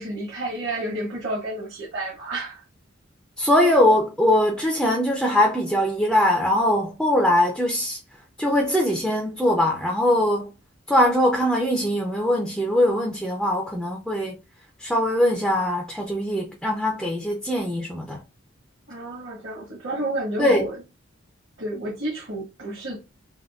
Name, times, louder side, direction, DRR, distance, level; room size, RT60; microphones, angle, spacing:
voice 1, 0.0-2.6 18.9-20.8 21.6-23.0, right 1 dB, 55° right, 1.0 m, -30 dB
voice 2, 3.4-8.0 8.4-10.5 10.9-14.4 14.8-18.2 20.4-20.6, left 1 dB, ahead, 0.3 m, -21 dB
3.4 x 2.2 x 2.3 m
head